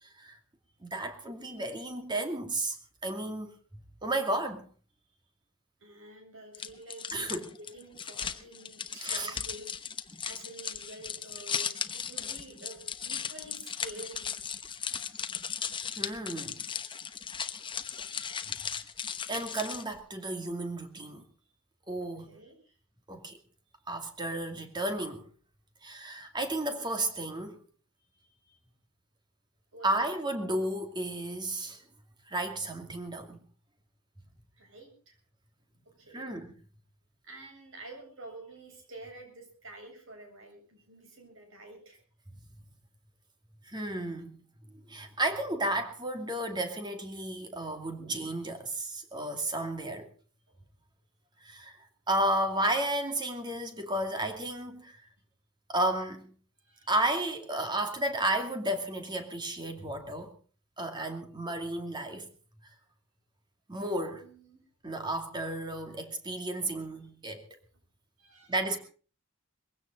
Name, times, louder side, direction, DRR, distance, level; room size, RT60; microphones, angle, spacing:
voice 1, 0.0-0.4 0.8-2.8 3.0-3.5 4.0-4.6 7.1-7.5 9.0-9.4 16.0-16.6 19.3-21.2 21.9-22.3 23.1-23.4 23.9-25.2 25.8-27.6 29.8-31.8 32.3-33.4 36.1-36.5 43.6-44.4 44.7-50.1 51.4-55.1 55.7-56.3 56.9-60.3 60.8-62.3 63.7-64.2 64.8-67.5 68.5-68.8, right 1 dB, 20° right, 2.4 m, -33 dB
voice 2, 5.8-9.9 10.2-14.3 22.0-22.8 28.1-28.6 29.7-30.3 34.6-35.2 35.8-36.3 37.2-42.0 50.5-50.6 56.6-56.9 64.0-64.6 65.9-66.1 68.2-68.8, right 2 dB, 65° right, 7.6 m, -49 dB
sound 1, 6.5-20.0, left 7 dB, 25° left, 1.0 m, -37 dB
21.5 x 16.5 x 4.0 m
head